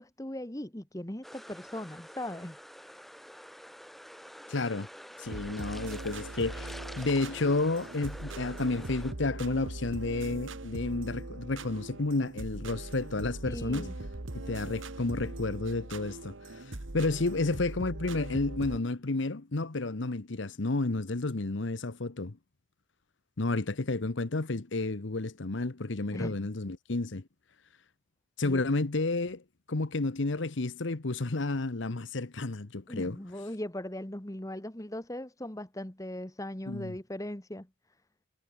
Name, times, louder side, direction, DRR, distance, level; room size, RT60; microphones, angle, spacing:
voice 1, 0.0-2.6 13.5-13.9 26.1-26.5 28.4-28.6 32.9-37.7, left 1 dB, 15° left, 1.4 m, -39 dB
sound 1, 1.2-9.1, equal, ahead, 1.7 m, -47 dB
voice 2, 4.5-4.9 5.2-13.9 14.3-22.4 23.4-27.2 28.4-29.4 29.7-33.2 36.7-36.9, left 2 dB, 70° left, 1.0 m, -31 dB
sound 2, 5.2-18.8, right 2 dB, 80° right, 1.7 m, -41 dB
head